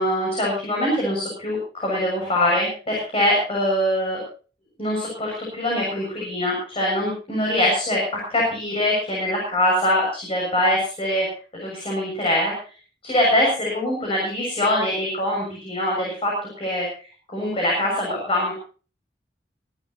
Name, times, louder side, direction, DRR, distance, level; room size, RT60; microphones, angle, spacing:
voice 1, 0.0-4.2 4.8-8.0 8.3-11.3 11.6-12.5 13.0-16.3 16.6-16.9 17.3-18.5, left 1 dB, 35° left, -3 dB, 7.0 m, -23 dB
25.0 x 12.0 x 3.0 m, 0.38 s
head